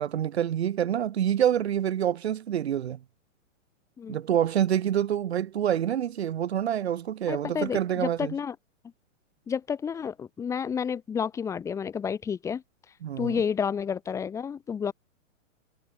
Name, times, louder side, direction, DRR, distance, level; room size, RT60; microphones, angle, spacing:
voice 1, 0.0-3.0 4.1-8.3 13.0-13.4, right 10 dB, 50° right, 1.8 m, -27 dB
voice 2, 7.3-8.5 9.5-12.6 13.2-14.9, left 7 dB, 5° left, 3.1 m, -30 dB
hypercardioid pair, 180°, 40 cm